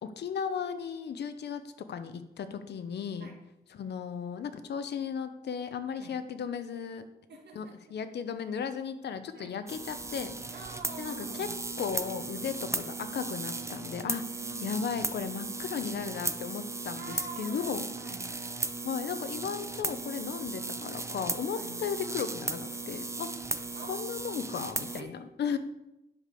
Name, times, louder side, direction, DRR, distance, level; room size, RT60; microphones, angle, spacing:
voice 1, 0.0-1.6 1.9-3.3 3.7-7.1 7.5-10.4 11.0-11.5 11.8-14.2 14.6-17.9 18.8-23.3 23.9-25.6, left 7 dB, 85° left, 10 dB, 0.8 m, -35 dB
voice 2, 7.3-8.0 9.3-9.6 10.5-11.6 14.0-14.8 17.0-18.4 21.5-21.8 23.7-24.3 25.0-25.2, right 3 dB, 85° right, 1 dB, 1.8 m, -46 dB
sound 1, 9.7-25.0, right 3 dB, 15° right, 0.7 m, -36 dB
11.0 x 5.2 x 6.8 m, 0.89 s
cardioid pair, 95°, 17 cm